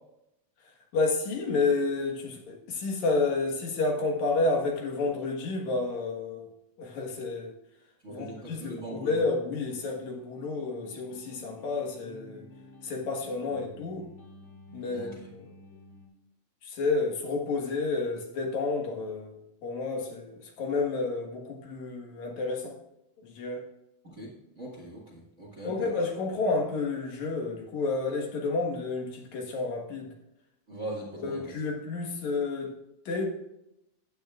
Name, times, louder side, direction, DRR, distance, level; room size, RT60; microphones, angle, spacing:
voice 1, 0.9-6.5 6.8-7.5 8.1-12.4 12.8-14.1 14.7-15.5 16.6-22.8 23.2-23.7 25.6-30.1 31.2-32.7 33.1-33.2, left 3 dB, 70° left, 1 dB, 2.8 m, -30 dB
voice 2, 8.0-9.2 14.9-15.1 24.0-24.3 24.6-26.0 30.7-31.4, right 1 dB, 30° right, -4 dB, 1.6 m, -40 dB
sound 1, 9.5-16.1, left 1 dB, 45° left, 3.0 m, -52 dB
14.5 x 9.2 x 2.4 m, 0.84 s
omnidirectional pair, 3.4 m